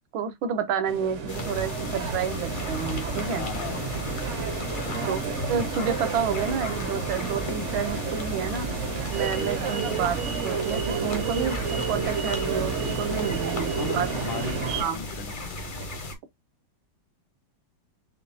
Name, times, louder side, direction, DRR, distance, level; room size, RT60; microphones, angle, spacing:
voice 1, 0.1-3.4 5.0-5.2 5.5-8.7 9.1-10.2 10.4-14.1 14.8-15.0, right 7 dB, 80° right, 1.7 m, -29 dB
sound 1, 0.9-14.8, right 5 dB, 50° right, 0.9 m, -30 dB
sound 2, 1.3-16.2, left 2 dB, 40° left, 0.7 m, -36 dB
voice 2, 3.4-5.2 9.8-10.0 13.5-15.8, left 9 dB, 75° left, 1.3 m, -40 dB
6.4 x 2.3 x 2.6 m
omnidirectional pair, 2.2 m